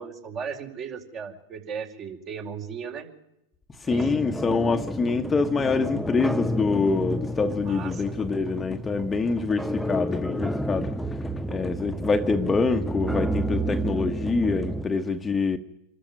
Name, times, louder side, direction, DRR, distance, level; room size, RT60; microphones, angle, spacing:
voice 1, 0.0-3.1 3.8-4.1 7.6-8.0, right 6 dB, 40° right, 4.6 m, -36 dB
voice 2, 3.9-10.9 11.5-15.6, left 4 dB, 20° left, 1.4 m, -25 dB
sound 1, 3.9-14.8, right 1 dB, ahead, 0.9 m, -30 dB
26.0 x 13.5 x 9.3 m
hypercardioid pair, 95°, 0 cm